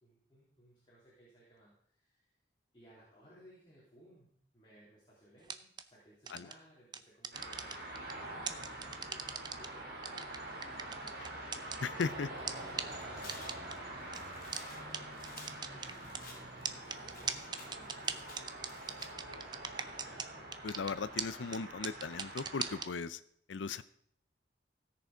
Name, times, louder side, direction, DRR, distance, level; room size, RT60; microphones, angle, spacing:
voice 1, 0.0-2.3 2.7-11.7 12.3-20.2, right 1 dB, 25° left, -7 dB, 3.6 m, -62 dB
sound 1, 5.4-5.8 6.3-6.5 6.9-8.1 8.5-9.7 10.0-12.0 12.5-12.6 12.8-12.9 13.3-13.7 14.1-14.2 14.5-14.6 14.9-15.0 15.2-16.2 16.6-20.3 20.5-20.9 21.2-21.3 21.5-21.6 21.8-22.9, right 6 dB, 25° right, 0.5 m, -38 dB
sound 2, 7.3-22.8, right 1 dB, 55° right, 3.1 m, -46 dB
voice 2, 11.8-12.3 20.6-23.2 23.5-23.8, left 5 dB, 90° left, 14 dB, 0.5 m, -37 dB
Tearing, 12.3-19.1, left 3 dB, 50° left, 3.4 m, -55 dB
16.0 x 6.8 x 5.1 m, 0.66 s
head